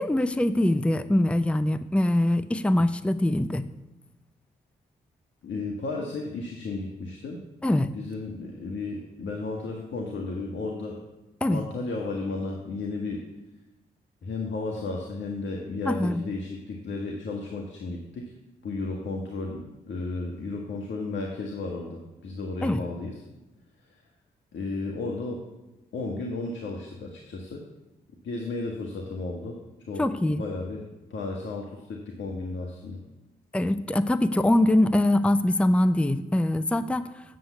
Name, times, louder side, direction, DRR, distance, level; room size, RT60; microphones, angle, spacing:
voice 1, 0.0-3.6 7.6-7.9 11.4-11.6 15.9-16.2 22.6-22.8 30.0-30.4 33.5-37.0, left 1 dB, 5° left, 13 dB, 0.6 m, -23 dB
voice 2, 5.4-7.4 7.9-11.0 11.5-13.2 14.2-18.3 18.6-23.2 24.5-25.4 25.9-27.6 28.2-29.6 29.9-33.0, left 3 dB, 70° left, 0 dB, 1.5 m, -33 dB
8.1 x 7.6 x 8.2 m, 1.0 s
supercardioid pair, 40°, 20 cm